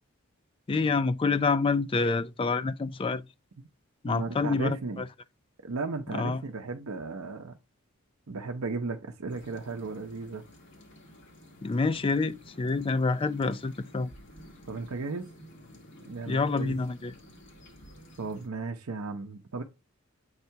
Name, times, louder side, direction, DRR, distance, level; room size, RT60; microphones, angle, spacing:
voice 1, 0.7-3.2 4.0-4.8 6.1-6.4 11.6-14.1 16.3-17.1, left 4 dB, 25° left, 0.3 m, -27 dB
voice 2, 4.1-5.0 5.6-7.5 8.3-10.4 14.7-15.3 16.1-16.8 18.2-19.6, right 3 dB, 80° right, 0.7 m, -35 dB
sound 1, 9.3-18.5, equal, 55° left, 2.3 m, -52 dB
8.0 x 2.8 x 4.5 m
head